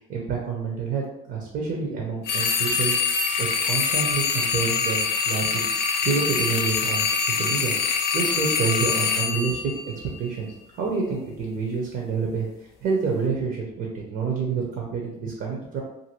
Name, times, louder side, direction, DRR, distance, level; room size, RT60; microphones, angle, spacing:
voice 1, 0.1-2.9 3.4-5.5 6.0-7.7 8.1-9.7 10.2-10.5 10.8-12.5 12.8-15.8, right 5 dB, 65° right, -1 dB, 0.7 m, -28 dB
sound 1, 2.3-10.4, left 5 dB, 75° left, 0.5 m, -24 dB
2.7 x 2.5 x 2.9 m, 0.84 s
cardioid pair, 110°, 17 cm